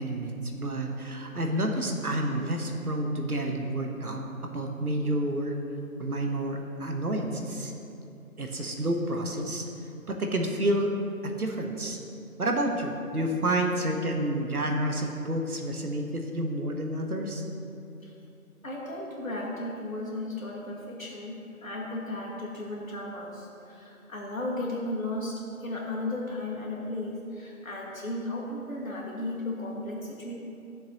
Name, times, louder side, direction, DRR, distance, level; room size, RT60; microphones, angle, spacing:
voice 1, 0.0-4.2 4.5-5.5 6.0-7.7 8.4-9.6 10.1-10.9 11.2-12.0 12.4-17.4, right 1 dB, 75° right, 2 dB, 1.3 m, -29 dB
voice 2, 18.6-30.3, left 1 dB, 60° left, -4 dB, 2.3 m, -35 dB
13.0 x 7.1 x 3.1 m, 2.7 s
figure-of-eight pair, 175°, 45 cm